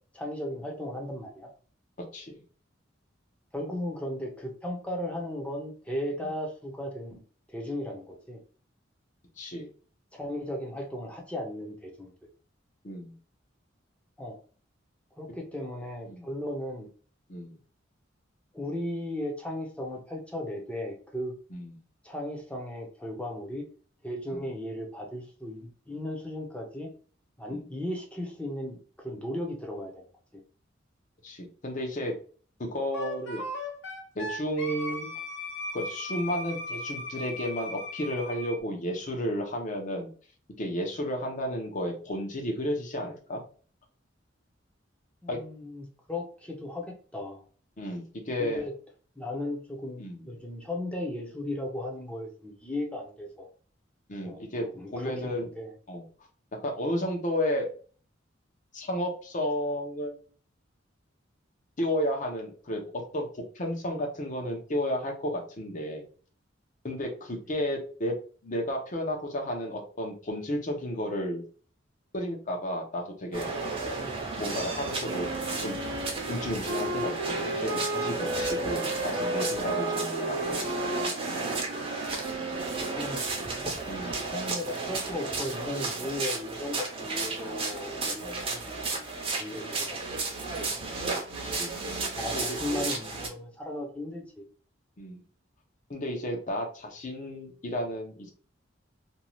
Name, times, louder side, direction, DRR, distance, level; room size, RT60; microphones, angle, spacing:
voice 1, 0.1-1.5 3.5-7.2 7.5-8.4 10.1-12.1 14.2-14.4 15.2-16.9 18.5-21.3 22.0-23.6 24.0-26.9 27.4-30.0 30.3-30.4 45.2-47.4 48.4-48.7 49.2-53.5 54.2-54.5 54.7-55.7 82.9-83.4 84.3-89.1 89.4-89.6 89.9-90.5 92.1-94.4, left 1 dB, 5° left, 0 dB, 0.6 m, -36 dB
voice 2, 9.4-9.7 12.8-13.1 16.1-16.2 17.3-17.6 21.5-21.7 24.3-24.4 27.5-27.6 31.2-32.1 32.6-33.4 34.1-35.1 35.7-40.1 40.6-43.4 45.3-45.4 47.8-48.6 50.0-50.3 54.1-55.5 55.9-56.0 56.6-57.7 58.7-60.2 61.8-62.8 63.1-63.3 63.5-66.0 66.8-68.1 68.4-71.4 72.1-73.5 74.4-75.7 76.3-80.6 83.9-84.2 88.1-88.4 91.4-91.7 92.3-92.6 95.0-95.2 95.9-98.3, equal, 40° left, 0 dB, 0.7 m, -32 dB
Wind instrument woodwind instrument, 32.9-38.6, left 2 dB, 65° left, 1.1 m, -37 dB
sound 1, 73.3-93.3, right 3 dB, 30° right, 0.7 m, -33 dB
Wind instrument woodwind instrument 2, 75.0-83.2, right 1 dB, 80° right, 0.6 m, -35 dB
2.7 x 2.3 x 3.0 m, 0.41 s
head